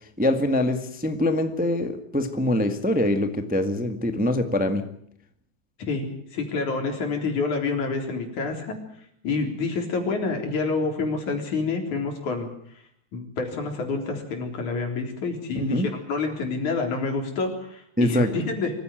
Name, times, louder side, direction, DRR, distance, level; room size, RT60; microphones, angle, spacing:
voice 1, 0.2-4.8 15.5-15.9 18.0-18.4, left 1 dB, 5° right, 7 dB, 1.0 m, -24 dB
voice 2, 5.8-8.8 9.2-12.5 13.1-15.8 16.1-18.7, left 4 dB, 90° left, 3 dB, 5.3 m, -28 dB
24.5 x 15.5 x 9.1 m, 0.67 s
omnidirectional pair, 3.3 m